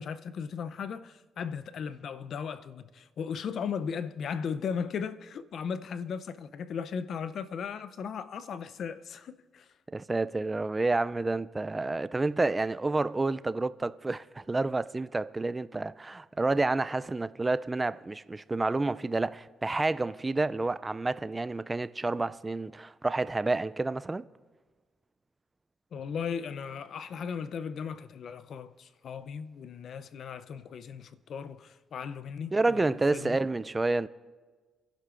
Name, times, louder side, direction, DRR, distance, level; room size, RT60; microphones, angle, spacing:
voice 1, 0.0-9.7 25.9-33.4, left 6 dB, 60° left, 0.5 m, -37 dB
voice 2, 9.9-24.2 32.5-34.1, right 3 dB, 20° right, 0.3 m, -29 dB
27.0 x 11.0 x 2.5 m
cardioid pair, 90°, 0 cm